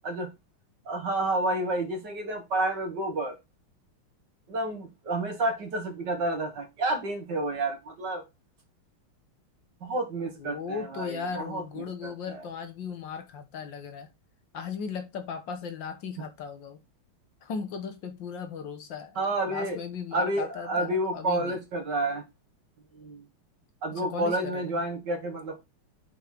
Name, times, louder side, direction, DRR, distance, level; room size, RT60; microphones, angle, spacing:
voice 1, 0.9-3.4 4.5-8.2 9.8-12.4 19.2-19.8 20.1-22.2 23.0-23.2 23.8-25.6, right 2 dB, 55° right, 2.2 m, -30 dB
voice 2, 10.2-14.1 14.5-16.8 17.4-19.2 19.4-21.6 23.9-24.8, left 6 dB, 65° left, 1.7 m, -37 dB
5.9 x 5.5 x 3.8 m
omnidirectional pair, 2.4 m